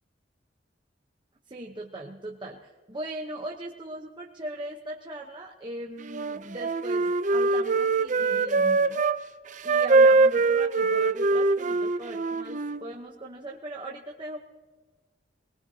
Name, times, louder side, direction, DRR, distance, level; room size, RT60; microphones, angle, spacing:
voice 1, 1.5-9.0 9.6-14.4, right 1 dB, 25° right, -1 dB, 1.0 m, -39 dB
Wind instrument woodwind instrument, 6.0-9.2 9.6-12.8, right 3 dB, 45° right, 0.6 m, -23 dB
22.0 x 19.5 x 2.8 m, 1.3 s
head